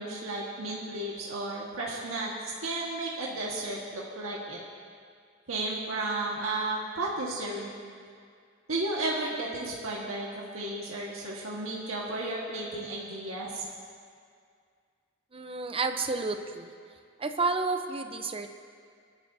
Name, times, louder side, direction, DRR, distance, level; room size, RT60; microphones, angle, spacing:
voice 1, 0.0-4.6 5.5-7.7 8.7-13.7, right 2 dB, 75° right, -4 dB, 1.7 m, -33 dB
voice 2, 15.3-16.7 17.2-18.5, right 3 dB, 25° right, 7 dB, 0.7 m, -30 dB
24.5 x 11.5 x 2.8 m, 2.2 s
head